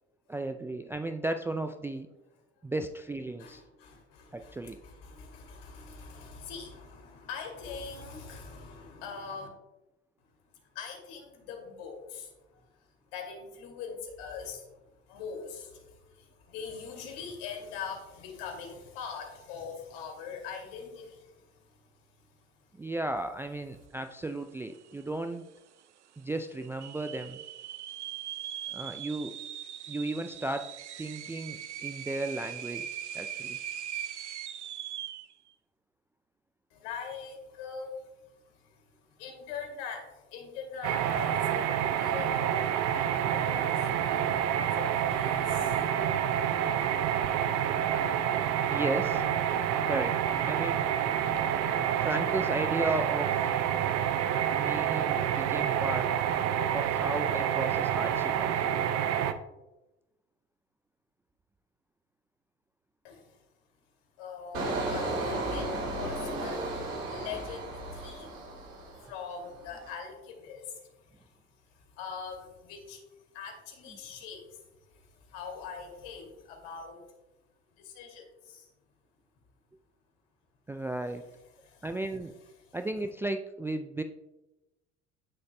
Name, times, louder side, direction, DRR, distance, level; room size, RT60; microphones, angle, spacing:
voice 1, 0.3-2.1 2.6-3.6 4.3-4.8 22.8-25.5 26.2-27.4 28.7-29.3 29.9-30.7 31.0-33.6 48.7-49.2 49.9-50.9 52.0-53.5 54.6-56.1 56.7-58.8 80.7-81.2 81.8-82.3 82.7-84.0, right 2 dB, 5° right, 7 dB, 0.3 m, -35 dB
voice 2, 3.4-9.5 10.2-22.9 36.7-48.4 63.0-63.4 64.2-77.2 77.7-78.7 81.5-81.9 82.2-82.8, left 6 dB, 65° left, 3 dB, 2.5 m, -44 dB
sound 1, 24.4-24.5 24.7-25.3 25.8-25.9 26.6-35.3, right 10 dB, 85° right, 0.5 m, -40 dB
sound 2, 40.8-59.3, right 9 dB, 50° right, 0.7 m, -28 dB
Engine, 64.5-69.2 69.6-69.9, right 2 dB, 65° right, 2.9 m, -34 dB
16.0 x 6.3 x 2.2 m, 1.0 s
hypercardioid pair, 70°, 34 cm